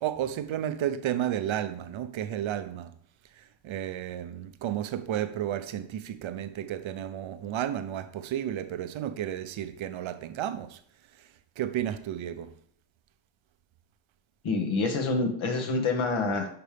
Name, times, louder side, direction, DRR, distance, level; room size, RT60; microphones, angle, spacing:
voice 1, 0.0-2.9 3.4-10.8 11.6-12.5, right 11 dB, 70° right, 0.8 m, -32 dB
voice 2, 14.4-16.5, left 3 dB, 75° left, 2.0 m, -27 dB
11.5 x 5.2 x 3.5 m
cardioid pair, 115°, 48 cm